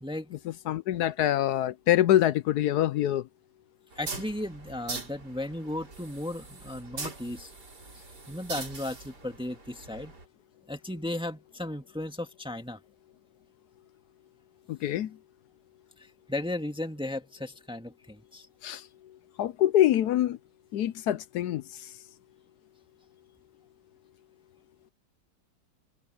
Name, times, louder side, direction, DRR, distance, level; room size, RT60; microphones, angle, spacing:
voice 1, 0.4-3.2 14.7-15.2 18.6-18.8 19.4-20.4 20.7-21.6, left 12 dB, 70° left, 1.0 m, -25 dB
sound 1, 3.9-10.2, right 3 dB, 60° right, 3.9 m, -42 dB
voice 2, 4.0-7.5 8.3-10.1 10.7-12.8 16.3-18.5, left 1 dB, 5° right, 1.6 m, -35 dB
omnidirectional pair, 2.0 m